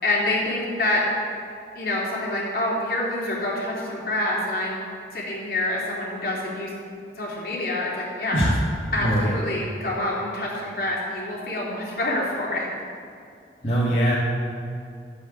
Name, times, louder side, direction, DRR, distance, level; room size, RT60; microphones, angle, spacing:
voice 1, 0.0-1.0 1.7-4.8 5.1-6.7 7.2-8.4 8.9-12.7, left 1 dB, 55° left, -4 dB, 3.5 m, -26 dB
voice 2, 9.0-9.3 13.6-14.1, right 1 dB, 35° left, -8 dB, 2.2 m, -21 dB
12.0 x 8.1 x 8.5 m, 2.4 s
head